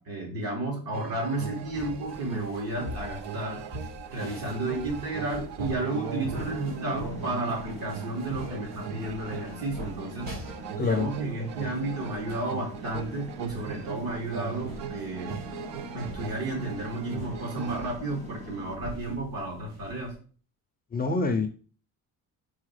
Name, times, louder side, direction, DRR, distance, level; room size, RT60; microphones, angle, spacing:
voice 1, 0.0-3.6 4.1-10.3 10.8-15.4 15.9-20.1, right 2 dB, 60° right, -1 dB, 2.8 m, -32 dB
sound 1, 0.9-17.9, right 8 dB, 85° right, 0.7 m, -40 dB
sound 2, 1.4-20.1, equal, 45° right, 2.9 m, -44 dB
sound 3, 5.9-18.8, equal, 15° right, 0.9 m, -43 dB
voice 2, 20.9-21.5, left 3 dB, 25° left, 5 dB, 0.4 m, -26 dB
4.8 x 4.1 x 4.8 m, 0.40 s
cardioid pair, 170°, 40 cm